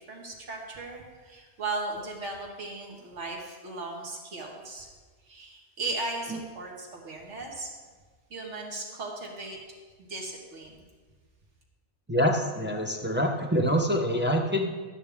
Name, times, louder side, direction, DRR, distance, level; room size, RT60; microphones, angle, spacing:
voice 1, 0.1-4.9 5.2-7.7 8.3-9.6 10.0-10.8, right 3 dB, 75° right, 0 dB, 2.0 m, -37 dB
voice 2, 12.1-14.9, equal, 10° right, 2 dB, 0.6 m, -26 dB
13.0 x 9.6 x 3.6 m, 1.4 s
omnidirectional pair, 1.2 m